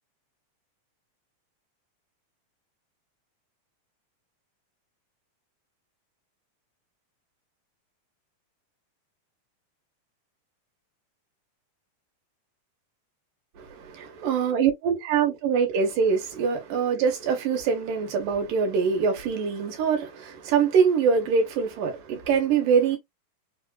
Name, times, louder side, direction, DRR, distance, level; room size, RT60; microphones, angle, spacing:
voice 1, 14.0-23.0, right 6 dB, 85° right, 2.7 m, -24 dB
5.4 x 2.3 x 2.3 m
omnidirectional pair, 3.7 m